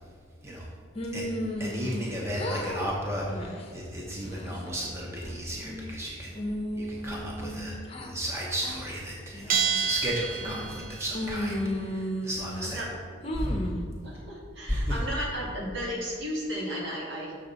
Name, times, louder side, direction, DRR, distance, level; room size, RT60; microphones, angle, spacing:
sound 1, 1.0-2.1 2.4-2.9 3.3-3.6 4.1-4.7 5.2-6.0 6.4-8.1 8.6-8.8 9.3-9.8 10.4-10.8 11.1-12.7 13.2-13.8, left 1 dB, 30° left, 0.7 m, -34 dB
voice 1, 1.6-6.4 6.8-12.8 13.3-13.6 14.7-15.0, equal, 15° right, -3 dB, 0.8 m, -34 dB
Bell, 9.5-11.1, right 7 dB, 45° right, 0.4 m, -29 dB
voice 2, 12.6-13.0 14.0-17.4, equal, 65° right, -3 dB, 1.8 m, -34 dB
6.5 x 6.5 x 3.9 m, 2.1 s
head